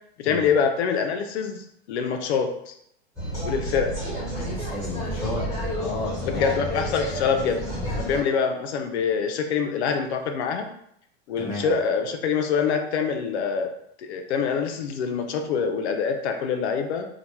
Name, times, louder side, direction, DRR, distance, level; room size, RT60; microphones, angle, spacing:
voice 1, 0.2-2.7 3.4-4.0 6.3-7.6 8.0-10.7 11.3-13.7 14.0-17.1, left 6 dB, 85° left, 6 dB, 0.6 m, -25 dB
sound 1, 3.2-8.2, equal, 10° left, 1.1 m, -30 dB
voice 2, 4.3-6.6 11.4-11.7, left 2 dB, 35° left, -4 dB, 0.8 m, -33 dB
2.9 x 2.1 x 3.0 m, 0.73 s
supercardioid pair, 145°, 33 cm